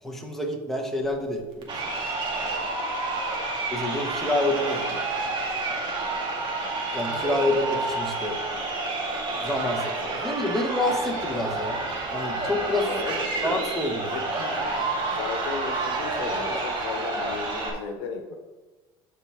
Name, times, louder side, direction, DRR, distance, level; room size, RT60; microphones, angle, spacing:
voice 1, 0.0-2.0 3.7-4.8 6.9-8.4 9.4-11.8 12.1-12.9 13.4-14.2, left 1 dB, 5° left, 1 dB, 1.2 m, -28 dB
Crowd, 1.6-17.7, right 2 dB, 45° right, 1.8 m, -29 dB
voice 2, 4.7-5.0 12.8-13.6 14.1-14.7 15.1-18.3, left 5 dB, 75° left, 5 dB, 1.0 m, -35 dB
12.0 x 4.4 x 3.5 m, 1.2 s
supercardioid pair, 120°, 12 cm